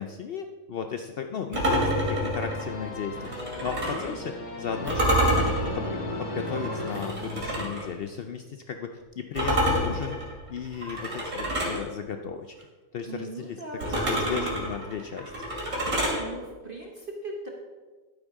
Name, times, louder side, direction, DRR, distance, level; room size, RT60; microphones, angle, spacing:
voice 1, 0.0-5.5 5.8-12.5 12.9-15.3, left 6 dB, 85° left, 6 dB, 0.5 m, -35 dB
sound 1, 1.5-4.1 4.9-7.9 9.4-11.8 13.8-16.2, equal, 65° right, 3.1 m, -28 dB
sound 2, 2.4-8.1, left 2 dB, 50° left, 1.8 m, -36 dB
voice 2, 13.1-14.6 16.2-17.5, right 3 dB, 40° right, 0 dB, 1.2 m, -39 dB
11.5 x 8.9 x 3.6 m, 1.3 s
omnidirectional pair, 1.6 m